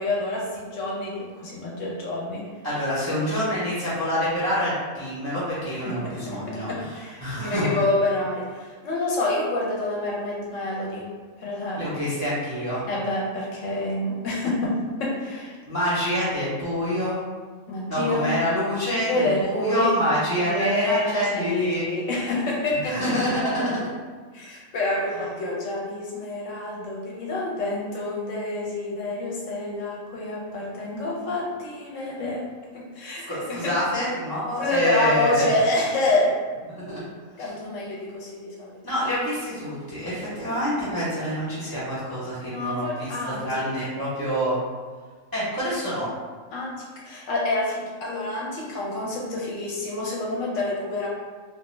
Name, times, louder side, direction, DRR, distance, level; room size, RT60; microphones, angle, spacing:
voice 1, 0.0-2.4 5.8-11.1 11.4-11.8 12.9-15.6 17.7-18.3 19.1-19.9 20.4-23.2 24.3-32.4 32.7-33.7 34.6-36.3 37.4-38.8 42.4-43.6 46.5-51.1, left 2 dB, 70° left, -4 dB, 0.9 m, -27 dB
voice 2, 2.6-7.8 11.8-12.9 15.7-17.3 17.9-21.8 22.9-23.9 33.3-35.5 36.7-37.0 37.4-37.5 38.8-44.6 45.3-46.1, equal, 30° right, -10 dB, 0.4 m, -27 dB
2.3 x 2.2 x 3.0 m, 1.5 s
omnidirectional pair, 1.5 m